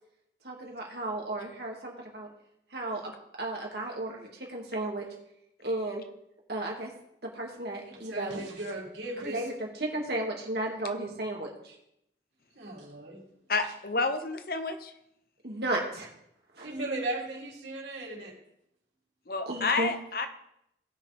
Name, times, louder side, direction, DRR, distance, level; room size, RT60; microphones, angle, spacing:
voice 1, 0.4-2.3 2.7-3.1 3.4-5.0 5.6-6.0 6.5-6.9 7.4-8.3 9.2-9.5 9.8-11.7 15.4-16.1 16.6-16.7 19.5-19.9, right 1 dB, 65° right, 0 dB, 2.4 m, -34 dB
voice 2, 7.7-9.5 12.6-13.2 13.6-13.7 16.6-18.3 19.5-19.7, right 2 dB, 80° right, -2 dB, 3.4 m, -37 dB
voice 3, 13.5-14.9 19.3-20.3, left 3 dB, 55° left, 8 dB, 0.9 m, -29 dB
18.0 x 6.3 x 3.5 m, 0.78 s
head